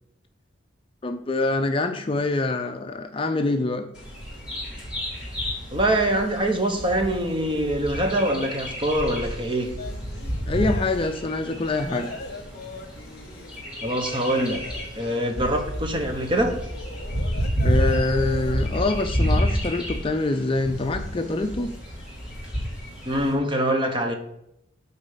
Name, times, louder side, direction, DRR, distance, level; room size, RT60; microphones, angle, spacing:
voice 1, 1.0-3.9 10.5-12.1 17.6-21.7, left 2 dB, 30° left, 7 dB, 0.5 m, -25 dB
Bird vocalization bird call bird song, 3.9-23.3, equal, 5° right, 2.8 m, -30 dB
voice 2, 5.7-9.7 13.8-14.6 14.9-16.6 23.0-24.2, right 1 dB, 25° right, 4 dB, 1.0 m, -24 dB
sound 1, 9.8-11.3 11.8-18.6, left 3 dB, 55° left, 1.0 m, -40 dB
8.4 x 4.0 x 5.7 m, 0.78 s
head